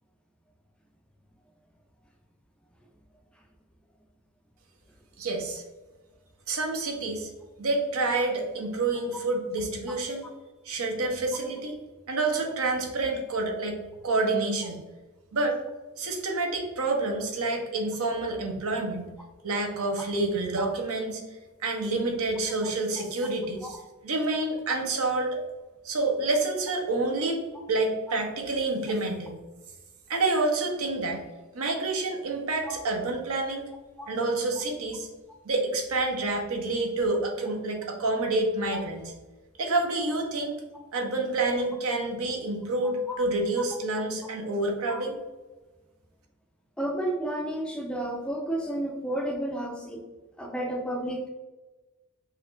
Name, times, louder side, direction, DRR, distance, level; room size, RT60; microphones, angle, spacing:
voice 1, 5.2-5.6 6.5-7.3 7.6-10.2 10.6-11.8 12.1-14.8 15.3-15.6 16.0-19.1 19.4-21.2 21.6-23.8 24.0-25.4 25.8-27.4 27.7-29.4 30.1-31.2 31.5-33.7 34.1-35.1 35.4-39.1 39.6-40.6 40.9-45.2, right 2 dB, 70° right, 2 dB, 0.7 m, -28 dB
voice 2, 42.8-43.2 44.9-45.0 46.8-50.0 50.4-51.3, right 1 dB, 5° left, 1 dB, 0.3 m, -32 dB
4.2 x 2.9 x 2.5 m, 1.2 s
head